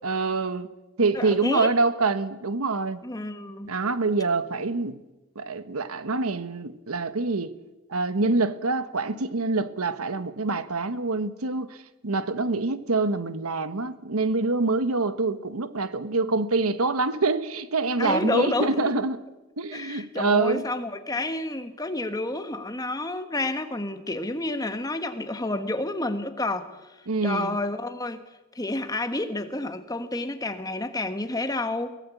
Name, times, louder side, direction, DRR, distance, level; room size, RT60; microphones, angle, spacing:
voice 1, 0.0-0.7 1.0-3.0 3.7-5.0 5.3-7.5 7.9-11.8 12.0-19.2 19.6-20.6 27.1-27.6, right 3 dB, 80° right, 1.2 m, -25 dB
voice 2, 1.1-1.7 3.0-3.7 18.0-18.9 19.7-26.7 27.2-28.2 28.5-32.0, left 2 dB, 15° left, 1.3 m, -29 dB
23.0 x 18.0 x 8.4 m
head